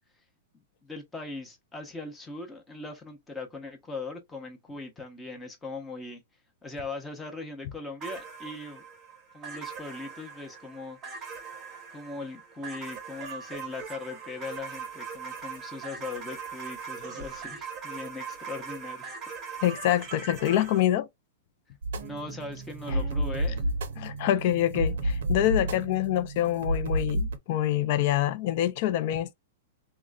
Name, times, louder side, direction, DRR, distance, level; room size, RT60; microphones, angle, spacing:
voice 1, 0.5-6.2 6.6-8.8 9.3-11.4 11.9-19.2 22.0-23.8, left 3 dB, 10° left, 0.7 m, -40 dB
sound 1, 8.0-20.8, right 6 dB, 20° right, 0.8 m, -41 dB
voice 2, 19.6-21.1 22.9-23.0 24.0-29.3, left 12 dB, 45° left, 0.4 m, -26 dB
sound 2, 21.8-27.4, right 1 dB, 80° right, 0.5 m, -30 dB
3.6 x 2.1 x 2.2 m
supercardioid pair, 165°, 0 cm